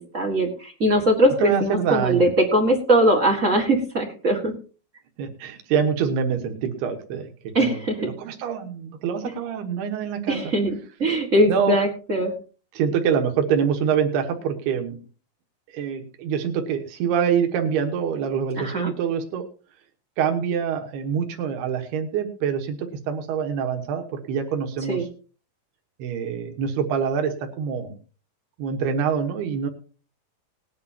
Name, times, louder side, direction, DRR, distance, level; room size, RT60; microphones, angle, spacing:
voice 1, 0.1-4.5 7.5-8.1 10.3-10.7 11.0-12.3 18.6-18.9 24.9-25.1, right 1 dB, 40° right, -1 dB, 1.0 m, -21 dB
voice 2, 1.4-2.3 5.2-10.4 11.5-11.8 12.8-15.0 15.7-19.4 20.2-25.1 26.0-27.9 28.6-29.7, right 7 dB, 85° right, 5 dB, 3.3 m, -25 dB
19.5 x 10.5 x 2.8 m, 0.37 s
omnidirectional pair, 4.5 m